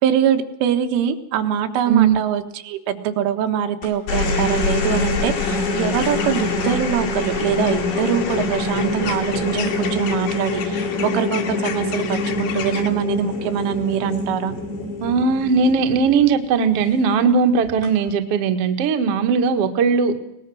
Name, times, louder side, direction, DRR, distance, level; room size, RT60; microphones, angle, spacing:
voice 1, 0.0-14.5, right 9 dB, 90° right, 7 dB, 4.0 m, -23 dB
sound 1, 3.8-16.4 17.7-18.1, left 3 dB, 75° left, 6.6 m, -25 dB
sound 2, 5.9-12.9, left 8 dB, 60° left, 3.1 m, -34 dB
voice 2, 15.0-20.1, right 5 dB, 65° right, 5 dB, 1.5 m, -18 dB
22.5 x 19.5 x 6.3 m, 0.83 s
omnidirectional pair, 5.5 m